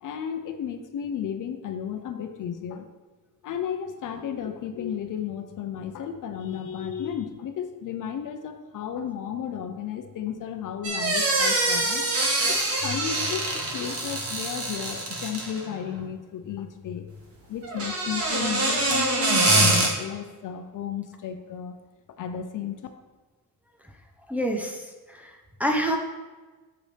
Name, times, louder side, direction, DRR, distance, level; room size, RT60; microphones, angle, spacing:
voice 1, 0.0-2.9 3.4-12.1 12.5-17.1 17.5-21.7 22.2-22.8, left 8 dB, 60° left, 7 dB, 0.7 m, -33 dB
sound 1, 10.8-15.7 17.6-19.9, right 2 dB, 40° right, 1.4 m, -24 dB
voice 2, 24.3-26.0, equal, 5° right, 0 dB, 0.7 m, -28 dB
8.0 x 6.9 x 3.4 m, 1.3 s
cardioid pair, 140°, 36 cm